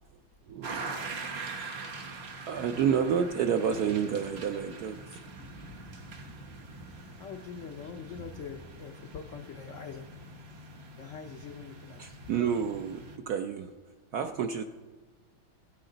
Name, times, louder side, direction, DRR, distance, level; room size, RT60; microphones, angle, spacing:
voice 1, 0.5-0.8 1.5-2.2 2.5-5.2 12.0-13.7 14.1-14.6, right 7 dB, 75° right, 6 dB, 0.8 m, -30 dB
sound 1, 0.6-13.2, right 3 dB, 40° right, 1.0 m, -43 dB
sound 2, 2.5-8.8, equal, 10° right, 4.6 m, -52 dB
voice 2, 7.2-10.1 11.0-12.2, left 6 dB, 85° left, 5 dB, 0.6 m, -43 dB
16.5 x 9.2 x 3.9 m, 1.3 s
omnidirectional pair, 2.2 m